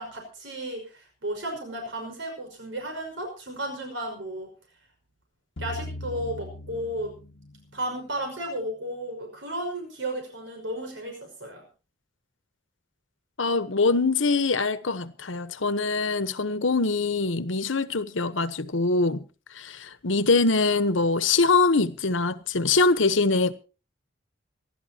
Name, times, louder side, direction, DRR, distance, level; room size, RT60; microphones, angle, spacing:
voice 1, 0.0-4.5 5.6-7.1 7.7-11.6, right 1 dB, 80° right, 5.6 m, -34 dB
sound 1, 5.6-8.0, left 1 dB, 65° left, 1.2 m, -39 dB
voice 2, 13.4-19.2 19.5-23.5, left 3 dB, 85° left, 1.1 m, -23 dB
27.0 x 12.0 x 2.9 m
head